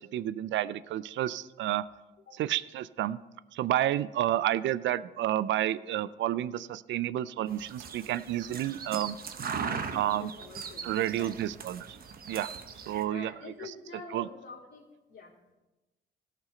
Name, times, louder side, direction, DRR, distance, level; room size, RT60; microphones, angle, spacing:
voice 1, 0.0-1.8 2.3-3.2 3.5-9.2 9.9-10.3 10.8-11.9 12.3-12.5 12.9-13.7 14.1-14.3, right 12 dB, 70° right, 17 dB, 0.4 m, -30 dB
sound 1, 7.5-13.0, right 6 dB, 50° right, 0.9 m, -39 dB
voice 2, 9.6-11.3 13.0-14.8 15.1-15.5, left 4 dB, 65° left, -5 dB, 3.2 m, -47 dB
17.0 x 6.0 x 4.4 m, 1.1 s
cardioid pair, 90°, 20 cm